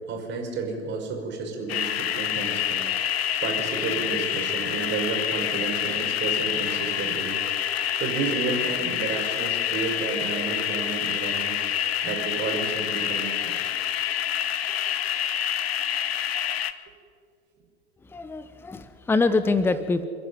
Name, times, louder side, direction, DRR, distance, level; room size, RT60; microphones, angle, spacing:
voice 1, 0.1-2.9 3.4-7.4 8.0-11.6 12.0-13.8, right 4 dB, 35° right, 2 dB, 5.5 m, -31 dB
sound 1, 1.7-16.7, left 10 dB, 65° left, 1.1 m, -27 dB
voice 2, 18.1-20.0, left 3 dB, 5° left, 13 dB, 0.8 m, -24 dB
28.5 x 11.0 x 9.7 m, 2.3 s
figure-of-eight pair, 90°, 33 cm